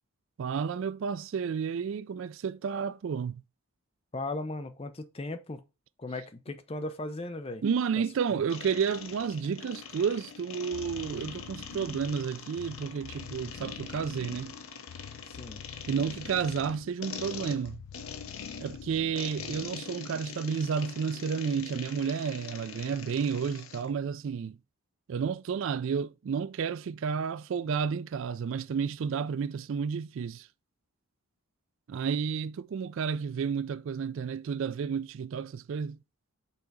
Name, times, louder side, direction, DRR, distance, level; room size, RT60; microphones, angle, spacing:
voice 1, 0.4-3.4 7.6-14.5 15.9-17.8 18.6-24.6 25.1-30.5 31.9-36.0, right 6 dB, 60° right, 0.3 m, -31 dB
voice 2, 4.1-5.6 6.0-7.6 15.3-15.6, left 2 dB, 25° left, 0.6 m, -37 dB
sound 1, 8.5-23.9, left 6 dB, 65° left, 0.8 m, -43 dB
sound 2, 10.7-19.9, left 7 dB, 90° left, 0.4 m, -47 dB
5.7 x 3.9 x 4.6 m
head